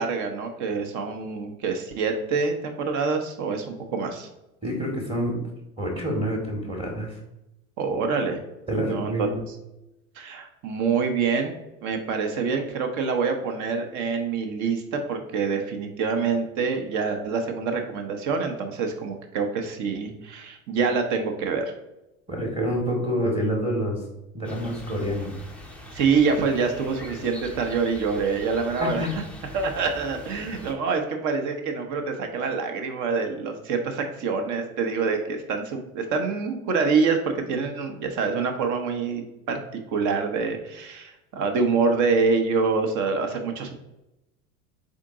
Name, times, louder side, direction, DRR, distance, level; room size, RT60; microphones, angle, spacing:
voice 1, 0.0-4.3 7.8-8.4 8.9-9.3 10.2-11.5 11.8-21.7 25.9-29.0 29.5-43.7, right 5 dB, 45° right, 5 dB, 0.8 m, -26 dB
voice 2, 4.6-5.4 5.8-7.2 8.7-9.4 22.3-24.0 24.3-25.3 28.8-29.1, equal, 10° right, -1 dB, 1.1 m, -27 dB
sound 1, 24.4-30.7, left 1 dB, 5° left, 0.5 m, -42 dB
3.8 x 3.6 x 3.7 m, 0.91 s
figure-of-eight pair, 80°, 43 cm